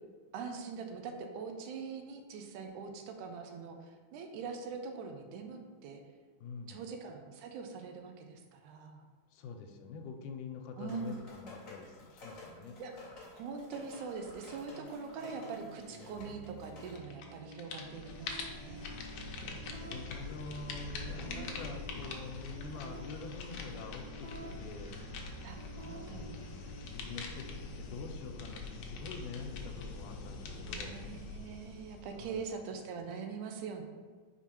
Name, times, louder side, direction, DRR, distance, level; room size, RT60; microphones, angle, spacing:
voice 1, 0.3-6.0 6.7-9.1 10.8-11.2 12.8-12.9 13.4-18.8 21.3-21.6 25.4-26.4 30.7-33.8, right 5 dB, 80° right, 4 dB, 2.0 m, -43 dB
voice 2, 6.4-6.8 9.3-12.8 19.5-25.0 25.8-31.0 32.2-32.5, left 4 dB, 90° left, 5 dB, 2.1 m, -46 dB
sound 1, 10.9-17.0, left 2 dB, 35° left, 1.4 m, -52 dB
sound 2, 14.7-32.7, right 2 dB, 55° right, 1.4 m, -51 dB
sound 3, 16.9-17.3 17.5-32.5, left 4 dB, 75° left, 1.5 m, -44 dB
5.4 x 4.6 x 4.4 m, 1.5 s
omnidirectional pair, 3.6 m